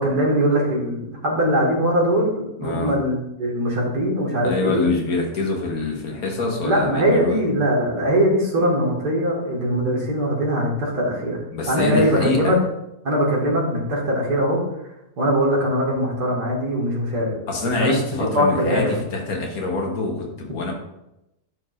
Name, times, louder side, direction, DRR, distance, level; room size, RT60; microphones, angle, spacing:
voice 1, 0.0-4.9 6.6-11.4 11.7-12.6 13.0-14.6 15.2-17.4 17.8-17.9 18.3-18.9, equal, 75° right, -4 dB, 2.5 m, -21 dB
voice 2, 2.6-2.9 4.4-7.5 11.5-12.5 17.5-20.7, left 3 dB, 65° left, 0 dB, 1.6 m, -25 dB
11.5 x 4.6 x 2.6 m, 0.88 s
omnidirectional pair, 1.7 m